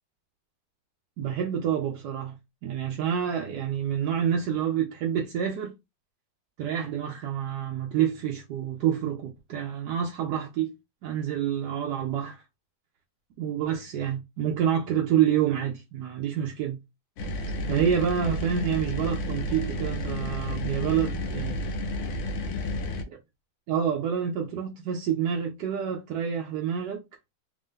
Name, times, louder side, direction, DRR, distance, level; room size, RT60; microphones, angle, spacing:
voice 1, 1.2-2.3 2.6-5.7 6.6-10.7 11.0-12.4 13.4-16.8 17.7-21.6 23.1-23.2 23.7-27.0, right 9 dB, 70° right, 1.0 m, -28 dB
sound 1, 17.2-23.0, left 1 dB, 70° left, 1.4 m, -31 dB
3.4 x 2.6 x 3.6 m
omnidirectional pair, 2.2 m